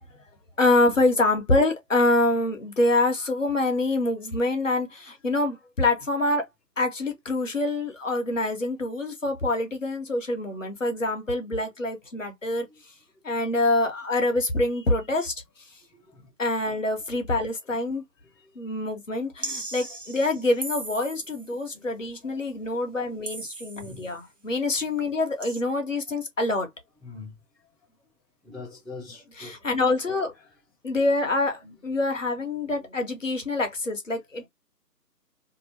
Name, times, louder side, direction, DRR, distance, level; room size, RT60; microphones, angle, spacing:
voice 1, 0.6-6.4 6.8-12.7 13.2-15.3 16.4-18.0 18.6-26.7 29.3-30.3 30.8-34.5, left 2 dB, 50° left, 0.9 m, -25 dB
voice 2, 15.9-16.3 21.7-21.9 22.2-22.5 23.8-24.1 27.0-27.3 28.4-29.6 31.6-31.7, left 4 dB, ahead, 0.6 m, -43 dB
sound 1, 19.4-21.5 23.2-24.1 25.4-25.6, right 2 dB, 50° right, 1.0 m, -37 dB
2.7 x 2.3 x 3.0 m
figure-of-eight pair, 175°, 50 cm